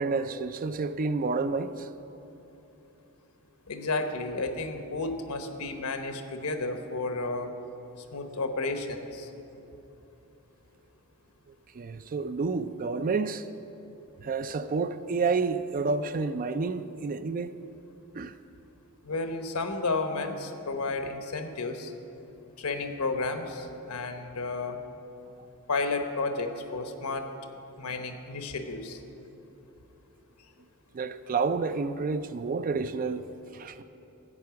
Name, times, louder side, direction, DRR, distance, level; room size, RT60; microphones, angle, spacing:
voice 1, 0.0-1.9 11.7-13.4 14.2-17.5 18.1-18.3 30.9-33.3 33.5-33.8, right 4 dB, 40° right, 0.4 m, -29 dB
voice 2, 3.7-7.5 8.1-9.3 19.0-21.9 22.6-24.8 25.7-27.3 27.8-29.0, left 3 dB, 75° left, 1.0 m, -32 dB
14.0 x 8.7 x 5.8 m
head